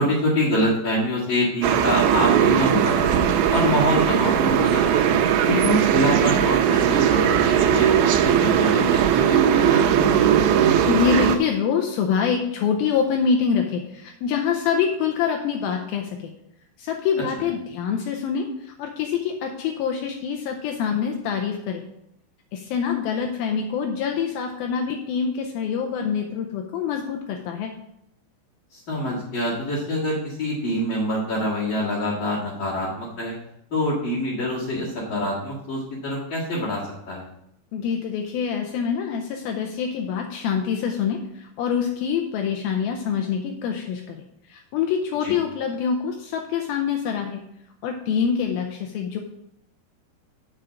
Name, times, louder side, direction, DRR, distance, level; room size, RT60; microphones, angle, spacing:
voice 1, 0.0-3.2 3.5-5.1 5.5-9.8 10.1-10.3 28.7-33.3 33.7-37.3 45.2-45.3, left 1 dB, 45° left, -8 dB, 1.8 m, -25 dB
sound 1, 1.6-11.4, right 9 dB, 85° right, 2.8 m, -19 dB
voice 2, 10.9-16.2 16.8-21.8 22.5-27.7 37.7-44.2 44.5-47.4 47.8-49.2, left 7 dB, 80° left, 3 dB, 2.2 m, -25 dB
7.5 x 5.1 x 7.3 m, 0.79 s
omnidirectional pair, 4.9 m